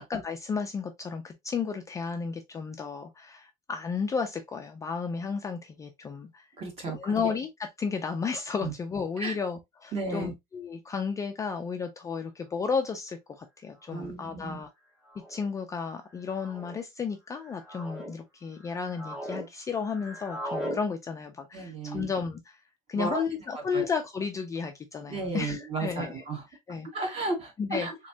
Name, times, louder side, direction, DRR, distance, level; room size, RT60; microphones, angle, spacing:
voice 1, 0.0-6.4 6.9-14.7 15.3-22.6 22.9-26.2 26.7-26.9 27.6-27.9, left 5 dB, 20° left, 0.3 m, -33 dB
voice 2, 6.6-7.1 8.6-8.7 9.2-9.3 9.9-10.3 13.9-14.6 21.5-22.1 22.9-23.2 23.7-23.8 25.1-26.4 26.9-28.0, right 3 dB, 40° right, 1.6 m, -33 dB
sound 1, 13.8-14.1 15.1-15.4 16.3-16.8 17.4-18.1 18.6-19.5 19.7-20.8, equal, 5° right, 1.1 m, -39 dB
3.6 x 3.1 x 2.7 m
cardioid pair, 165°, 17 cm